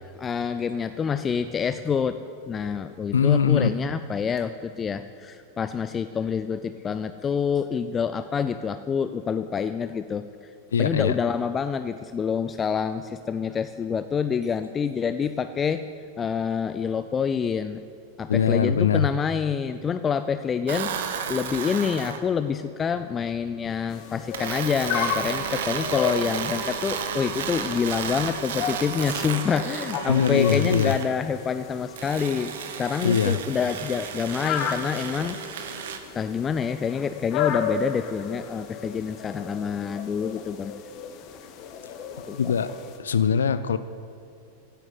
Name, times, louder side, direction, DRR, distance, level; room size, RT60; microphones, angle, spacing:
voice 1, 0.1-2.2 2.5-10.3 10.8-15.8 16.2-17.8 18.2-20.9 21.3-32.5 32.8-35.8 36.1-40.7 42.3-42.4, left 6 dB, 20° left, 11 dB, 0.5 m, -27 dB
voice 2, 3.1-3.7 10.7-11.2 18.3-19.1 30.1-30.9 33.0-33.4 42.4-42.7 43.0-43.8, left 7 dB, 70° left, 13 dB, 0.5 m, -21 dB
sound 1, 20.7-22.2 24.3-31.1 32.0-36.0, right 7 dB, 55° right, 1.3 m, -33 dB
sound 2, 23.9-43.0, left 7 dB, 40° left, 1.4 m, -34 dB
16.0 x 9.2 x 9.7 m, 2.5 s
figure-of-eight pair, 90°, 0 cm